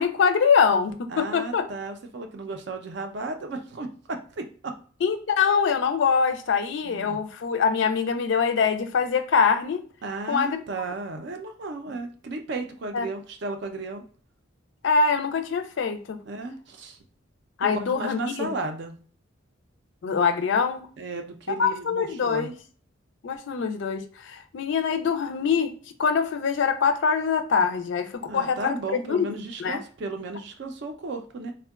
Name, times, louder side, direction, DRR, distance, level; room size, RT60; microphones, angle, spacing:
voice 1, 0.0-1.7 5.0-9.8 10.3-10.6 12.9-13.1 14.8-16.2 17.6-18.5 20.0-20.9 21.6-22.5 23.2-25.7 26.0-29.3 29.6-29.8, left 6 dB, 60° left, 9 dB, 0.4 m, -24 dB
voice 2, 1.1-4.7 6.8-7.2 10.0-14.0 16.3-17.0 17.6-19.0 21.0-22.5 28.2-31.5, right 3 dB, 60° right, 5 dB, 0.4 m, -34 dB
3.5 x 2.2 x 2.2 m, 0.43 s
head